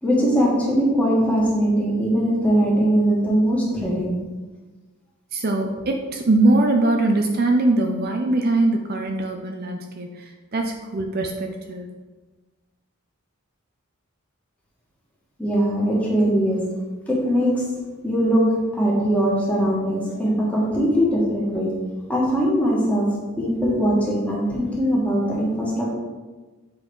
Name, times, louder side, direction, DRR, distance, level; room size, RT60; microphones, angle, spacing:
voice 1, 0.0-4.2 15.4-16.7 17.1-17.6 18.0-21.8 22.1-25.9, equal, 5° left, -5 dB, 1.7 m, -21 dB
voice 2, 5.3-10.1 10.5-11.9, right 2 dB, 45° right, 3 dB, 0.5 m, -21 dB
7.5 x 3.8 x 4.8 m, 1.3 s
head